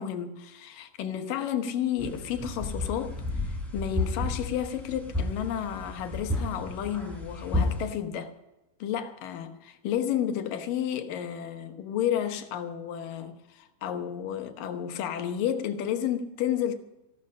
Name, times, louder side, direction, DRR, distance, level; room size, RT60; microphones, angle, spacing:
voice 1, 0.0-8.3 8.8-16.7, left 10 dB, 70° left, 2.6 m, -31 dB
sound 1, 2.0-7.8, left 2 dB, ahead, 4.0 m, -32 dB
15.5 x 12.5 x 5.4 m
omnidirectional pair, 4.3 m